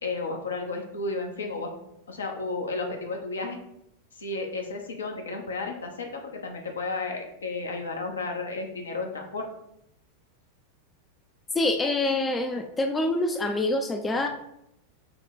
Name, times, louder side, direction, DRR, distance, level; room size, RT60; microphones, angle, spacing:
voice 1, 0.0-1.7 2.1-3.6 4.2-9.5, left 3 dB, 70° left, 2 dB, 0.7 m, -33 dB
voice 2, 11.5-14.3, left 2 dB, 15° left, 5 dB, 0.3 m, -26 dB
4.3 x 2.2 x 4.3 m, 0.80 s
figure-of-eight pair, 90°, 0 cm